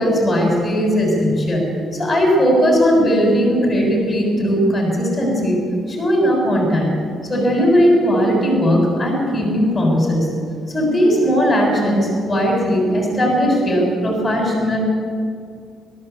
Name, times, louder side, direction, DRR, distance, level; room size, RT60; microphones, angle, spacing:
voice 1, 0.0-1.7 1.9-5.6 5.9-6.9 7.3-10.3 10.7-14.8, equal, 15° left, -1 dB, 7.3 m, -17 dB
28.5 x 13.5 x 8.4 m, 2.2 s
cardioid pair, 90°, 0 cm